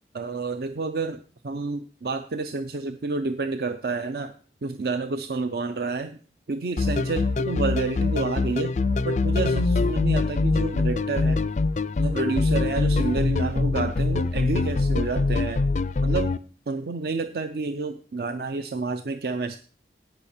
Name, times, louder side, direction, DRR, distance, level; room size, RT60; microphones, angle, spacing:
voice 1, 0.1-4.3 4.6-6.2 6.5-8.7 9.0-11.4 12.0-15.6 16.0-16.3 16.7-19.6, right 3 dB, 60° right, 9 dB, 0.5 m, -29 dB
sound 1, 6.8-16.4, left 3 dB, 40° left, 0.4 m, -24 dB
17.0 x 5.8 x 4.3 m, 0.40 s
head